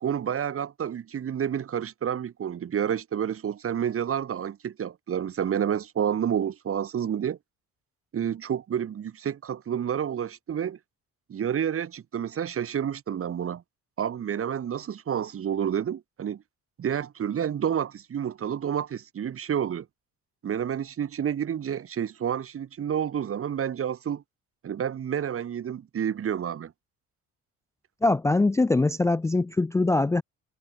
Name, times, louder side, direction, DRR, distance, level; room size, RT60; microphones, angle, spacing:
voice 1, 0.0-7.4 8.1-10.8 11.3-13.6 14.0-16.4 16.8-19.9 20.4-24.2 24.6-26.7, right 9 dB, 45° right, 1.4 m, -29 dB
voice 2, 28.0-30.2, left 2 dB, 10° left, 0.4 m, -22 dB
cardioid pair, 100°, 31 cm